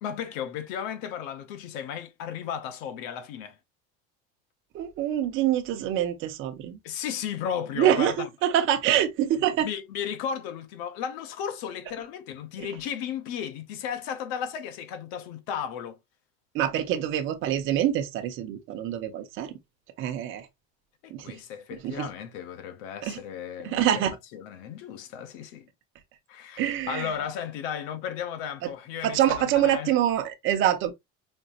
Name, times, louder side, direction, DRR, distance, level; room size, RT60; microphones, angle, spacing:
voice 1, 0.0-3.6 6.8-8.3 9.6-16.0 21.0-25.7 26.3-26.6 26.9-29.9, left 8 dB, 75° left, 1.0 m, -35 dB
voice 2, 4.7-6.8 7.8-9.7 16.5-19.5 20.0-20.5 21.1-21.4 21.7-22.1 23.0-23.2 23.6-24.2 26.6-27.1 28.6-28.7 29.0-30.9, right 11 dB, 40° right, 0.8 m, -25 dB
5.3 x 2.8 x 2.5 m
cardioid pair, 160°, 30 cm